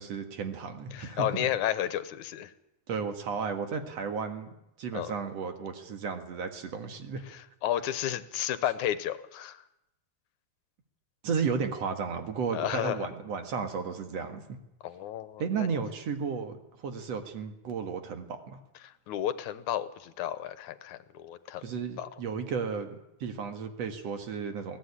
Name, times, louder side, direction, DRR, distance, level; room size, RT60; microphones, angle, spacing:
voice 1, 0.0-1.5 2.9-7.2 11.2-14.4 15.4-18.6 21.6-24.8, right 5 dB, 60° right, 7 dB, 2.8 m, -34 dB
voice 2, 0.9-2.5 4.9-5.1 7.3-9.6 12.5-13.0 14.8-15.7 19.1-21.6 22.0-22.1, left 11 dB, 80° left, 13 dB, 2.4 m, -32 dB
22.0 x 16.5 x 9.9 m, 0.87 s
omnidirectional pair, 3.4 m